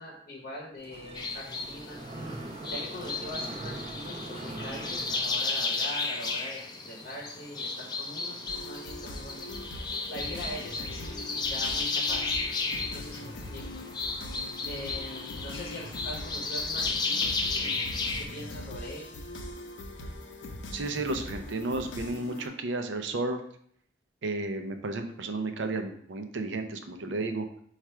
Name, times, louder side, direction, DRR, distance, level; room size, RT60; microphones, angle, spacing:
voice 1, 0.0-2.0 2.7-6.6 6.9-9.7 10.1-12.4 12.9-13.6 14.6-19.3, left 1 dB, 50° left, -3 dB, 0.8 m, -42 dB
Mechanisms, 0.8-6.0, right 2 dB, 35° right, 0.6 m, -41 dB
sound 1, 1.1-18.3, left 3 dB, 25° left, 0.4 m, -33 dB
sound 2, 8.5-22.5, left 1 dB, 80° left, 0.6 m, -41 dB
voice 2, 20.7-23.4 24.2-27.5, right 2 dB, 85° right, 6 dB, 0.5 m, -32 dB
4.6 x 2.4 x 4.2 m, 0.65 s
head